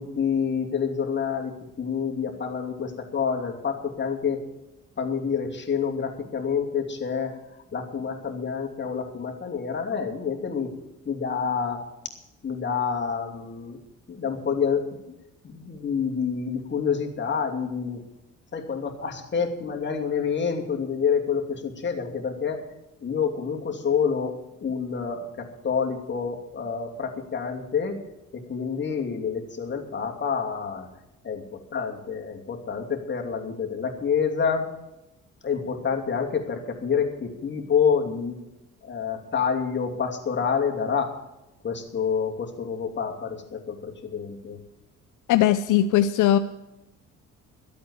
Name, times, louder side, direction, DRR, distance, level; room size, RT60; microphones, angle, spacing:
voice 1, 0.0-4.5 5.0-7.4 7.7-10.7 11.0-11.8 12.4-13.8 14.1-15.1 15.4-18.0 18.5-22.6 23.0-28.0 28.3-30.9 31.2-34.7 35.4-38.4 38.8-41.2 41.6-44.6, left 6 dB, 35° left, 1 dB, 2.7 m, -28 dB
voice 2, 45.3-46.4, left 11 dB, 80° left, 11 dB, 0.7 m, -19 dB
13.0 x 8.6 x 8.4 m, 0.93 s
cardioid pair, 90°, 30 cm